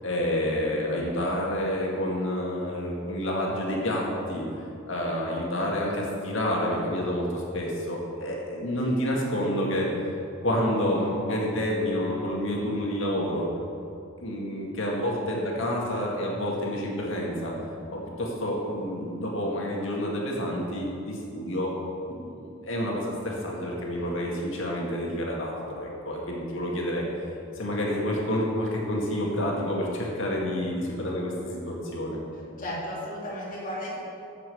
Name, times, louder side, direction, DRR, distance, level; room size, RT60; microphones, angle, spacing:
voice 1, 0.0-4.5 4.9-9.9 10.4-13.5 14.2-17.5 17.9-21.7 22.1-27.0 27.6-32.2, equal, 65° left, -2 dB, 2.1 m, -29 dB
voice 2, 32.6-34.0, equal, 40° left, -4 dB, 2.5 m, -34 dB
8.1 x 7.5 x 6.8 m, 2.6 s
head